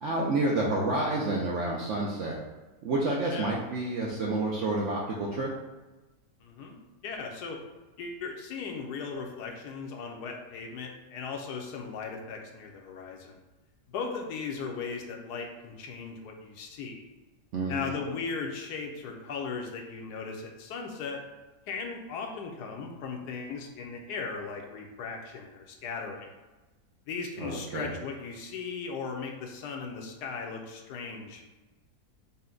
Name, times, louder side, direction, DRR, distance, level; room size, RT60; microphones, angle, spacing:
voice 1, 0.0-2.4 2.8-5.5 17.5-17.9 27.4-27.9, right 2 dB, 70° right, -3 dB, 0.7 m, -29 dB
voice 2, 6.4-7.6 8.0-13.4 13.9-17.1 17.7-21.2 21.7-26.3 27.1-31.4, left 5 dB, 80° left, 2 dB, 1.2 m, -37 dB
5.5 x 2.1 x 3.8 m, 1.1 s
omnidirectional pair, 1.8 m